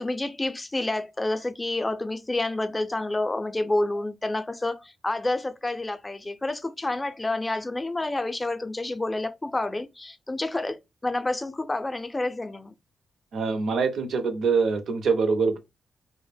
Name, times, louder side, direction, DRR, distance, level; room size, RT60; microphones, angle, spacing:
voice 1, 0.0-12.7, left 2 dB, 20° left, 0.4 m, -29 dB
voice 2, 13.3-15.6, right 5 dB, 75° right, 0.5 m, -24 dB
2.0 x 2.0 x 3.3 m
cardioid pair, 95°, 0 cm